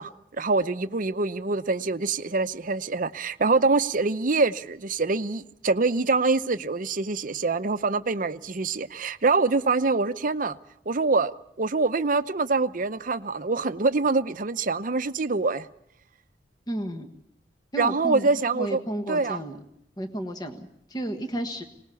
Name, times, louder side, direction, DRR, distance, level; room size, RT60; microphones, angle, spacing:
voice 1, 0.0-10.6 10.9-15.7 17.8-18.8 19.1-19.4, right 3 dB, 50° right, 0.8 m, -25 dB
voice 2, 16.7-17.1 17.7-19.6 20.0-21.6, right 1 dB, 25° left, 1.5 m, -33 dB
24.0 x 19.5 x 7.0 m
head